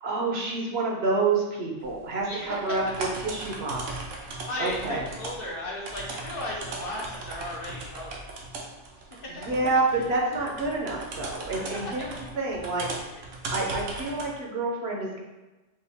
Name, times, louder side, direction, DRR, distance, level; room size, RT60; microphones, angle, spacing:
voice 1, 0.0-4.0 4.6-5.0 9.4-12.1 12.4-12.9 13.5-15.2, right 3 dB, 60° right, -1 dB, 0.9 m, -28 dB
sound 1, 1.8-14.3, right 2 dB, 85° right, 1.1 m, -38 dB
voice 2, 2.2-2.8 4.2-8.5 8.9-9.3 9.9-10.0 11.6-12.1 13.1-13.2, left 1 dB, 55° left, -3 dB, 0.9 m, -36 dB
5.4 x 2.4 x 3.4 m, 1.1 s
omnidirectional pair, 1.3 m